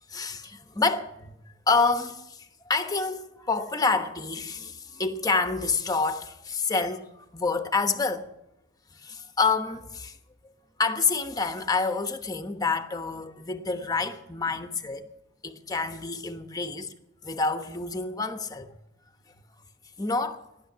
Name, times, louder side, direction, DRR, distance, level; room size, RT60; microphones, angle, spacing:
voice 1, 0.1-1.3 1.7-8.3 9.0-10.2 10.8-15.1 15.4-16.9 17.2-18.8 20.0-20.4, left 4 dB, 20° left, 1.1 m, -28 dB
15.5 x 11.5 x 6.8 m
head